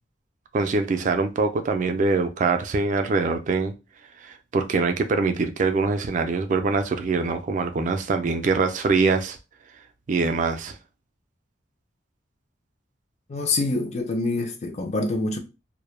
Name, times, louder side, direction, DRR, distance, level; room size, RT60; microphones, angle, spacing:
voice 1, 0.5-3.7 4.2-9.4 10.1-10.8, right 4 dB, 40° right, 0.3 m, -23 dB
voice 2, 13.3-15.4, left 2 dB, 35° left, 0.4 m, -26 dB
2.1 x 2.1 x 3.0 m
head